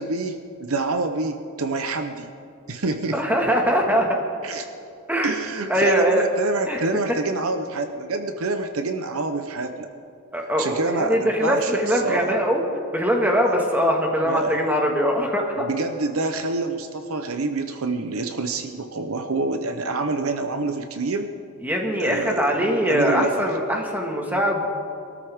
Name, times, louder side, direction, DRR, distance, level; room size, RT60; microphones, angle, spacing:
voice 1, 0.0-2.3 2.7-3.2 4.4-4.7 5.2-9.9 10.6-12.4 14.3-14.6 15.6-21.3 22.0-22.5 22.9-23.4, right 3 dB, 70° right, 7 dB, 0.8 m, -27 dB
voice 2, 3.1-4.2 5.1-5.3 5.7-6.2 6.7-6.9 10.3-12.6 12.9-15.7 21.6-24.6, equal, 10° right, 1 dB, 1.8 m, -22 dB
23.0 x 13.5 x 3.6 m, 2.5 s
head